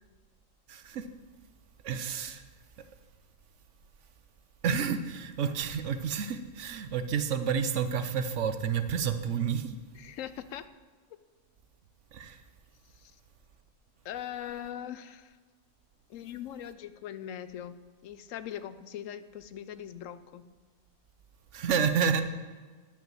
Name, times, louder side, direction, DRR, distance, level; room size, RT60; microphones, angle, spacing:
voice 1, 0.7-1.0 1.8-2.4 4.6-9.8 12.1-12.4 21.5-22.2, right 7 dB, 65° right, 9 dB, 1.0 m, -30 dB
voice 2, 9.9-10.7 13.0-13.1 14.0-15.4 16.1-20.5, left 10 dB, 75° left, 13 dB, 0.9 m, -41 dB
10.5 x 6.0 x 7.5 m, 1.4 s
omnidirectional pair, 1.4 m